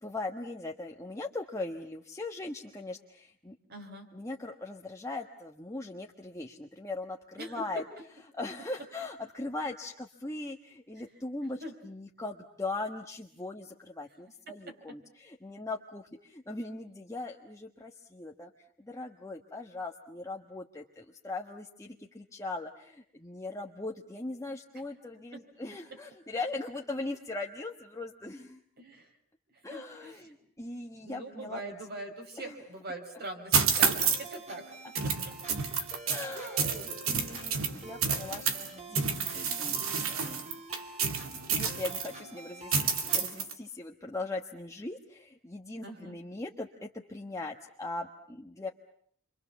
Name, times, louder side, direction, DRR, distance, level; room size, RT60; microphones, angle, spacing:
voice 1, 0.0-3.6 4.1-7.8 8.3-18.5 18.8-28.6 29.6-31.7 32.4-32.6 36.1-40.4 41.3-48.7, left 2 dB, 15° left, 1 dB, 1.3 m, -40 dB
voice 2, 3.7-4.1 7.4-7.7 11.6-11.7 14.5-15.0 25.3-25.4 28.8-29.2 29.5-30.3 31.0-35.3 36.3-37.0 45.8-46.2, right 2 dB, 50° right, 5 dB, 5.3 m, -43 dB
sound 1, 33.5-34.3 34.9-38.7 38.9-42.1 42.7-43.5, right 6 dB, 75° right, 2.5 m, -29 dB
sound 2, 34.0-43.3, right 2 dB, 35° right, 3.6 m, -47 dB
29.0 x 25.0 x 7.1 m, 0.64 s
head